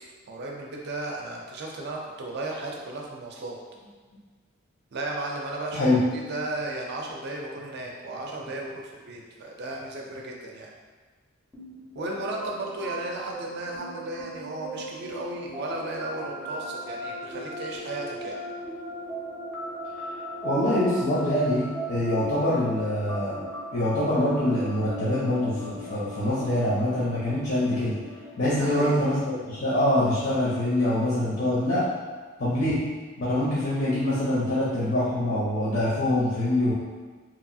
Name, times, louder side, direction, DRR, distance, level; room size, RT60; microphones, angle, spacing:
voice 1, 0.3-3.6 4.9-10.7 12.0-18.4 28.6-29.0, right 2 dB, 55° right, -1 dB, 0.5 m, -35 dB
sound 1, 11.5-31.1, right 1 dB, 5° left, 0.5 m, -38 dB
voice 2, 20.4-23.4 23.7-28.0 28.4-31.9 32.4-32.8 33.2-36.7, left 1 dB, 55° left, -9 dB, 0.6 m, -24 dB
2.9 x 2.3 x 2.6 m, 1.5 s
head